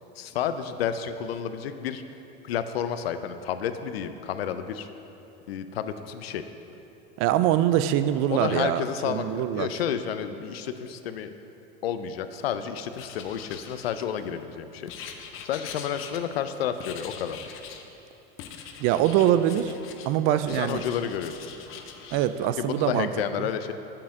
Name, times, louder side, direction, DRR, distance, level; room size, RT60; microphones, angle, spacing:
voice 1, 0.2-2.0 2.4-4.9 5.5-6.5 8.3-11.3 11.8-17.4 20.3-21.5 22.4-23.7, left 8 dB, 85° left, 10 dB, 0.6 m, -31 dB
voice 2, 7.2-9.7 18.8-19.7 20.1-20.8 22.1-23.1 23.4-23.5, right 11 dB, 45° right, 12 dB, 0.4 m, -24 dB
Writing, 12.9-14.3 14.9-16.5 16.8-17.9 18.4-20.1 20.4-22.3, left 7 dB, 45° left, 0.7 m, -42 dB
6.7 x 5.8 x 6.3 m, 2.9 s
hypercardioid pair, 105°, 29 cm